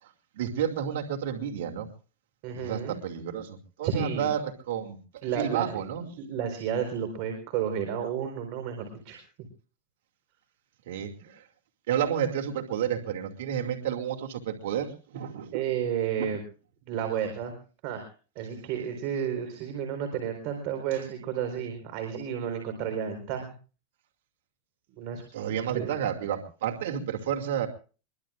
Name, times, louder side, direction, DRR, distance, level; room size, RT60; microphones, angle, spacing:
voice 1, 0.0-1.9 2.5-6.1 10.9-11.5 11.9-15.6 16.2-16.3 25.3-27.7, right 9 dB, 75° right, 5 dB, 2.4 m, -31 dB
voice 2, 2.4-3.0 3.8-4.3 5.2-5.8 6.2-9.5 15.5-16.4 16.8-17.5 17.8-18.0 18.4-23.5 25.0-25.9, right 8 dB, 55° right, 5 dB, 4.4 m, -32 dB
23.5 x 23.0 x 2.5 m, 0.39 s
supercardioid pair, 125°, 0 cm